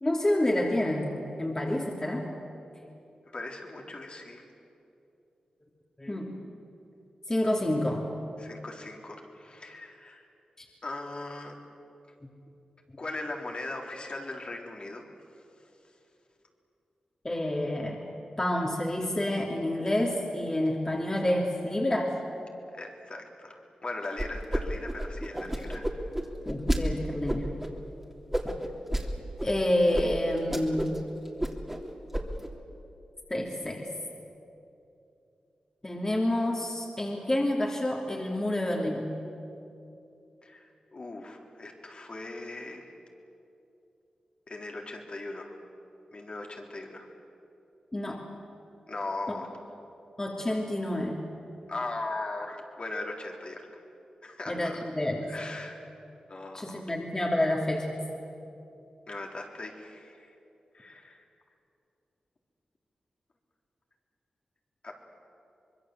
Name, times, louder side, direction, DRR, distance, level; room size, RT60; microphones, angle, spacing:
voice 1, 0.0-2.3 6.0-6.4 7.3-8.1 10.6-10.7 17.2-18.0 18.4-22.1 26.4-27.5 29.4-30.9 33.3-33.9 35.8-39.1 47.9-48.3 50.2-51.2 54.5-55.3 56.5-58.0, left 1 dB, 25° left, -1 dB, 3.1 m, -28 dB
voice 2, 3.3-4.4 8.4-10.3 10.8-11.6 13.0-15.1 15.6-15.7 22.7-25.9 40.4-42.9 44.5-45.6 46.1-47.1 48.9-49.6 51.7-53.8 54.2-54.8 55.3-55.8 56.3-56.9 59.1-60.3 60.7-61.2 64.8-64.9, left 2 dB, 50° left, 1 dB, 3.7 m, -39 dB
sound 1, 24.2-24.6 24.9-26.8 27.3-27.7 28.3-29.1 29.4-29.5 29.9-30.1 30.4-31.0 31.3-31.8 32.1-32.5, right 1 dB, 10° right, 3.2 m, -30 dB
25.0 x 22.0 x 7.9 m, 2.8 s
cardioid pair, 60°, 2 cm